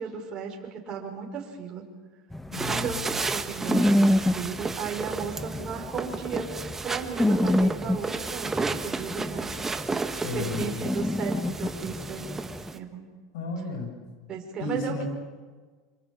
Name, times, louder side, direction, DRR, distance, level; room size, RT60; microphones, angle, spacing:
voice 1, 0.0-1.9 2.6-6.5 6.8-9.6 10.3-12.4 12.7-13.0 14.3-15.1, right 6 dB, 35° right, 1 dB, 5.4 m, -35 dB
sound 1, 2.3-12.7, left 1 dB, 5° left, 1.2 m, -28 dB
voice 2, 2.5-3.3 10.1-10.8 13.3-13.9 14.6-15.1, left 2 dB, 70° left, 5 dB, 7.7 m, -33 dB
sound 2, 2.5-12.8, right 3 dB, 15° right, 1.7 m, -33 dB
26.5 x 25.5 x 7.4 m, 1.4 s
hypercardioid pair, 100°, 2 cm